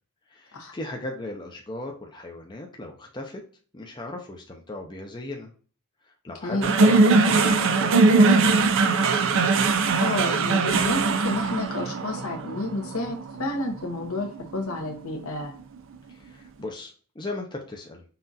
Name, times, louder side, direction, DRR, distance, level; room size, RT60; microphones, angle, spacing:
voice 1, 0.3-3.4 3.7-5.5 6.0-8.7 16.1-18.0, left 2 dB, 20° left, 1 dB, 0.5 m, -37 dB
sound 1, 6.6-15.1, right 3 dB, 60° right, 0.5 m, -21 dB
voice 2, 10.0-14.3 14.5-15.5, left 2 dB, 70° left, 1 dB, 1.0 m, -30 dB
5.7 x 2.4 x 2.7 m, 0.41 s
head